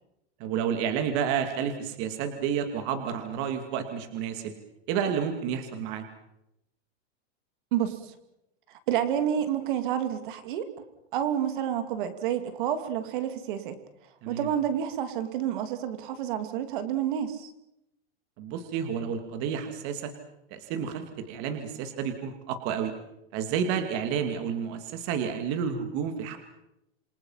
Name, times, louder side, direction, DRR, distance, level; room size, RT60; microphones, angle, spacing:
voice 1, 0.4-4.5 4.9-6.0 14.2-14.5 18.4-20.1 20.5-22.9 23.3-26.4, right 7 dB, 35° right, 7 dB, 2.5 m, -30 dB
voice 2, 7.7-8.1 8.9-10.7 11.1-13.8 14.3-17.5, right 10 dB, 50° right, 9 dB, 2.8 m, -29 dB
28.0 x 25.0 x 5.8 m, 0.86 s
supercardioid pair, 170°, 33 cm